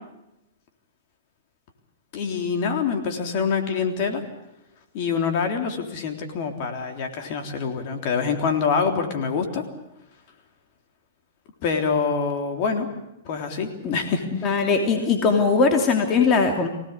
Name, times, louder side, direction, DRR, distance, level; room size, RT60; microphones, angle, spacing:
voice 1, 2.1-4.2 4.9-9.6 11.6-12.9 13.3-14.5, left 5 dB, 50° left, 5 dB, 3.5 m, -25 dB
voice 2, 14.3-16.7, left 4 dB, 30° left, 4 dB, 3.0 m, -20 dB
24.5 x 18.0 x 8.3 m, 0.87 s
hypercardioid pair, 130°, 0 cm